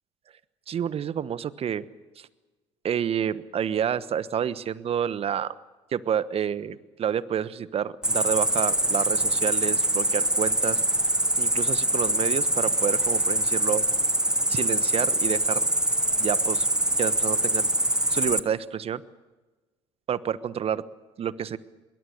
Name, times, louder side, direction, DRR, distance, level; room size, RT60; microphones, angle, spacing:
voice 1, 0.7-1.8 2.2-2.3 2.8-5.5 5.9-10.8 11.4-13.8 14.5-15.7 16.2-16.7 17.0-17.7 18.1-19.0 20.1-20.8 21.2-21.6, right 8 dB, 40° right, 16 dB, 1.2 m, -29 dB
Cricket, 8.0-18.4, right 1 dB, 5° right, 1.2 m, -24 dB
24.5 x 22.0 x 6.7 m, 1.2 s
hypercardioid pair, 60°, 15 cm